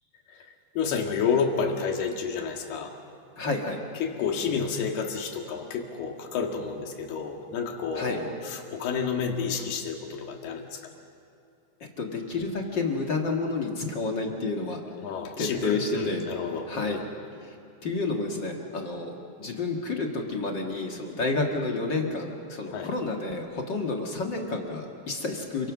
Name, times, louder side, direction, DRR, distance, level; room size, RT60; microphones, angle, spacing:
voice 1, 0.8-3.0 4.0-10.8 15.0-17.1 22.7-22.9, left 6 dB, 70° left, 2 dB, 3.9 m, -30 dB
voice 2, 3.4-3.8 7.9-8.3 11.8-14.8 15.4-16.2 16.7-17.0 17.4-17.5 17.8-25.7, left 3 dB, 45° left, 1 dB, 1.5 m, -30 dB
29.0 x 23.5 x 6.2 m, 2.6 s
omnidirectional pair, 4.8 m